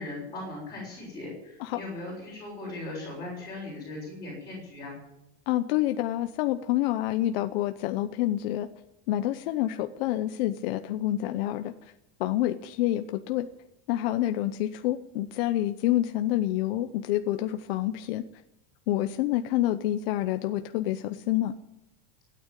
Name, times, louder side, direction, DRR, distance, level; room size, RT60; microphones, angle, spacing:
voice 1, 0.0-5.0, left 2 dB, 10° left, -7 dB, 6.4 m, -38 dB
voice 2, 5.5-8.7 9.1-11.9 12.2-13.5 13.9-18.2 18.9-21.6, left 14 dB, 65° left, 8 dB, 0.9 m, -28 dB
16.5 x 9.5 x 9.1 m, 0.88 s
cardioid pair, 175°, 32 cm